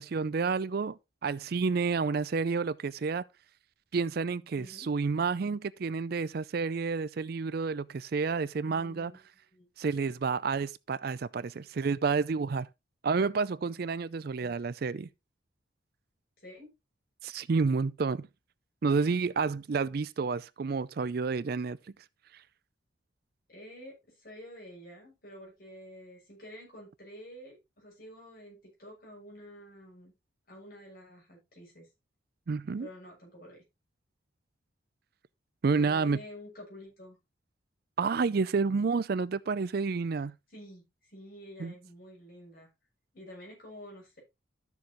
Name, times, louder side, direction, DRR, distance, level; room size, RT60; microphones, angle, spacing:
voice 1, 0.0-3.2 3.9-9.1 9.8-12.7 13.0-15.1 17.2-18.3 18.8-21.8 32.5-32.9 35.6-36.2 38.0-40.3 41.6-41.7, right 4 dB, 50° right, 0.4 m, -30 dB
voice 2, 4.6-4.9 8.6-9.2 9.5-9.7 14.4-14.6 16.4-16.7 23.5-30.1 30.5-31.9 32.8-33.6 35.8-37.2 40.5-42.7 43.1-44.2, equal, 45° left, 6.4 m, -49 dB
12.5 x 7.0 x 3.0 m
head